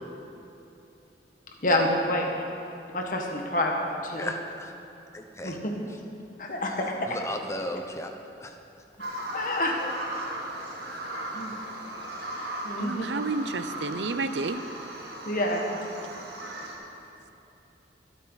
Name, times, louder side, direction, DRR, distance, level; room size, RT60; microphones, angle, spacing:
voice 1, 1.6-2.5 2.9-4.3 5.4-5.8 6.4-6.9 9.3-10.1 11.3-11.7 12.6-13.0 15.2-15.8, left 1 dB, 50° left, 1 dB, 1.6 m, -28 dB
voice 2, 4.2-4.7 5.1-5.6 7.1-8.1 8.4-8.5, left 1 dB, 15° left, 4 dB, 0.9 m, -34 dB
Bird vocalization bird call bird song, 9.0-16.7, right 1 dB, 65° right, 2.2 m, -37 dB
voice 3, 12.8-14.6, right 3 dB, 90° right, 11 dB, 0.7 m, -30 dB
23.5 x 8.6 x 4.1 m, 2.8 s
head